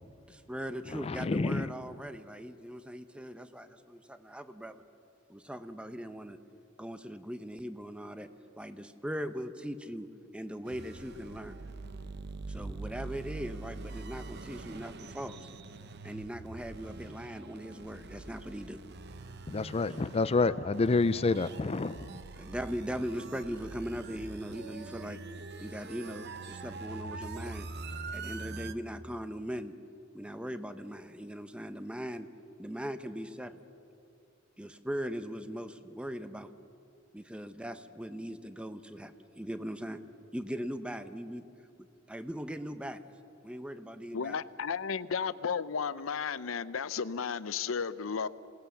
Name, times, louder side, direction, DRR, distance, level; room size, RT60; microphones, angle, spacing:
voice 1, 0.3-4.8 5.3-6.4 6.8-8.3 8.6-10.1 10.3-11.6 12.5-15.5 16.0-18.8 19.9-20.0 22.4-25.2 25.6-27.7 28.1-29.7 30.1-32.3 32.6-33.6 34.6-36.5 37.1-40.0 40.3-41.5 42.1-43.0 43.4-44.3, equal, 5° right, 0.8 m, -39 dB
voice 2, 0.9-1.7 19.5-22.1, left 3 dB, 30° left, 0.4 m, -28 dB
sound 1, 10.7-28.7, right 3 dB, 55° right, 0.8 m, -44 dB
voice 3, 44.1-48.3, left 6 dB, 80° left, 0.6 m, -33 dB
27.0 x 19.0 x 7.0 m
head